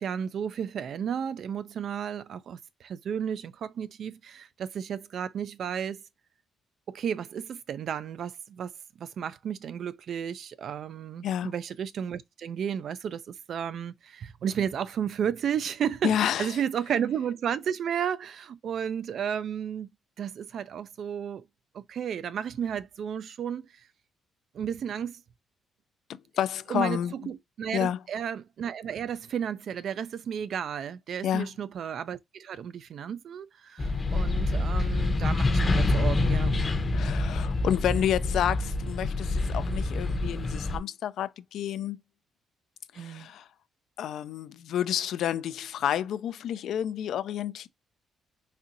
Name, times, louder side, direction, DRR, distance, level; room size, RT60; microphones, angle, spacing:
voice 1, 0.0-6.0 6.9-8.7 9.0-19.9 20.2-21.4 21.7-23.7 24.5-25.2 26.7-36.5 43.0-43.3, right 8 dB, 65° right, 0.3 m, -33 dB
voice 2, 16.0-16.6 26.4-27.1 27.7-28.0 31.2-31.5 36.9-42.0 42.9-43.5 44.0-47.7, left 10 dB, 75° left, 0.3 m, -29 dB
sound 1, 33.8-40.8, left 2 dB, 30° left, 0.7 m, -26 dB
4.1 x 2.5 x 2.6 m
cardioid pair, 90°, 0 cm